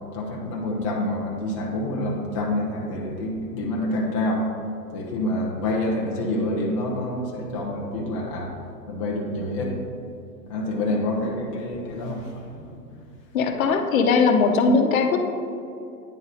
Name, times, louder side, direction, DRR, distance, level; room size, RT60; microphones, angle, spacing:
voice 1, 0.1-4.5 4.9-8.5 8.9-9.7 10.5-13.0, left 1 dB, 20° left, -3 dB, 0.4 m, -27 dB
voice 2, 13.3-15.2, left 4 dB, 55° left, 5 dB, 0.8 m, -19 dB
9.3 x 3.9 x 3.9 m, 2.6 s
hypercardioid pair, 135°, 49 cm